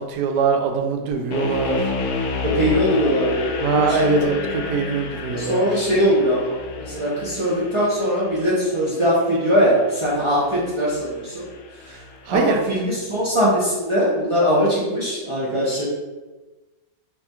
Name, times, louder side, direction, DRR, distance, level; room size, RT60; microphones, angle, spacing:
voice 1, 0.1-1.9 3.6-5.7 11.9-12.0 12.2-12.6, right 4 dB, 75° right, 4 dB, 1.2 m, -22 dB
sound 1, 1.3-12.4, left 4 dB, 90° left, 0.6 m, -30 dB
voice 2, 2.5-4.5 5.3-11.5 12.3-15.9, equal, 50° right, -8 dB, 0.3 m, -21 dB
5.7 x 2.3 x 2.9 m, 1.2 s
omnidirectional pair, 1.9 m